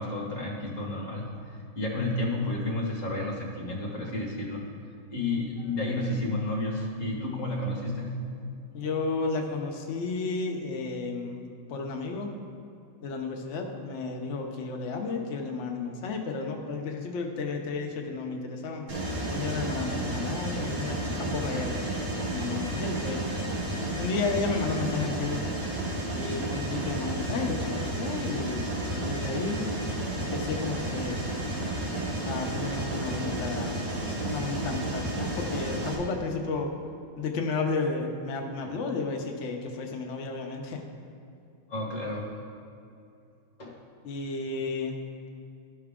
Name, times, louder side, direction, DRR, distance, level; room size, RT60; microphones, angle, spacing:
voice 1, 0.0-4.7 5.1-8.3 38.6-38.7 41.7-42.3 43.6-43.8, left 2 dB, 40° left, -3 dB, 1.7 m, -31 dB
voice 2, 8.7-12.3 13.0-18.9 19.3-21.9 22.3-23.3 24.0-25.4 26.1-28.7 28.9-29.7 30.2-31.2 32.2-33.7 34.2-36.7 37.2-40.8 44.0-45.0, left 4 dB, 90° left, 2 dB, 0.6 m, -32 dB
Mechanisms, 18.9-35.9, right 1 dB, 55° right, 1.9 m, -32 dB
12.5 x 5.8 x 3.6 m, 2.6 s
omnidirectional pair, 2.3 m